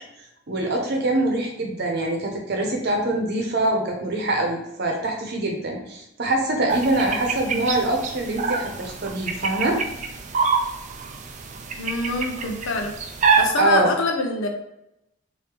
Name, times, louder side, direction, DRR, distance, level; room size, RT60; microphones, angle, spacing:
voice 1, 0.5-9.8 13.6-13.9, right 2 dB, 55° right, 1 dB, 0.8 m, -24 dB
sound 1, 6.7-13.5, right 5 dB, 40° right, 0.4 m, -26 dB
voice 2, 11.8-13.0 13.4-14.6, left 3 dB, 85° left, 3 dB, 0.6 m, -26 dB
3.1 x 2.7 x 3.4 m, 0.86 s
head